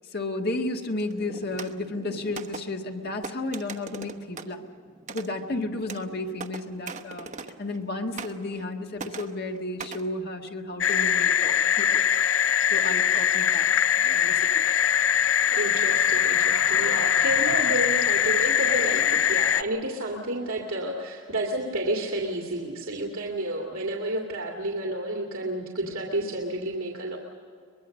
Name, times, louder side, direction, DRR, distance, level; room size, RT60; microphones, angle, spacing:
voice 1, 0.1-4.6 5.1-7.3 7.6-12.0 12.7-13.7 14.0-14.6, left 2 dB, 50° left, 3 dB, 1.8 m, -33 dB
sound 1, 1.0-7.9 8.2-8.7 9.0-10.1, right 4 dB, 35° right, 1.0 m, -41 dB
sound 2, 10.8-19.6, left 9 dB, 65° left, 0.6 m, -22 dB
voice 2, 15.5-27.2, right 1 dB, 85° right, -1 dB, 2.4 m, -30 dB
23.5 x 21.5 x 6.5 m, 2.4 s
head